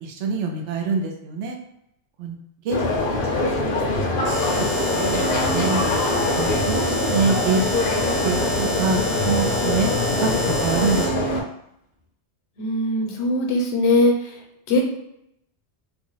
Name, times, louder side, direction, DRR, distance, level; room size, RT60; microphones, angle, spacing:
voice 1, 0.0-1.6 2.2-2.4 2.6-3.8 4.6-4.7 4.9-5.8 6.3-7.7 8.2-9.0 9.2-9.9 10.2-10.3 10.6-11.4, right 4 dB, 85° right, 1 dB, 0.9 m, -25 dB
sound 1, 2.7-11.4, left 2 dB, 60° left, 0.6 m, -23 dB
Alarm, 4.2-11.3, equal, 40° right, 0.7 m, -30 dB
voice 2, 12.6-14.1 14.7-14.8, left 2 dB, 75° left, 1 dB, 1.0 m, -20 dB
2.6 x 2.0 x 3.8 m, 0.79 s
omnidirectional pair, 1.2 m